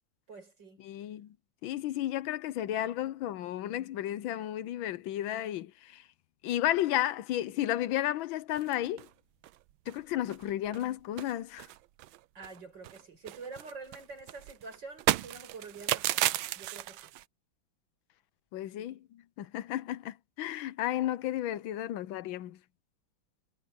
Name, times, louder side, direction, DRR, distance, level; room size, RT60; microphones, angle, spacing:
voice 1, 0.3-0.9 12.3-16.3 16.5-17.1, right 4 dB, 65° right, 6.6 m, -47 dB
voice 2, 0.8-1.3 1.6-6.0 6.4-9.1 9.9-11.7 18.5-19.0 19.4-22.6, left 13 dB, 80° left, 1.5 m, -33 dB
sound 1, 8.6-9.1 9.4-9.6 9.9-10.0 10.3-10.9 11.2-12.6 12.8-17.2, right 14 dB, 85° right, 1.5 m, -34 dB
omnidirectional pair, 2.1 m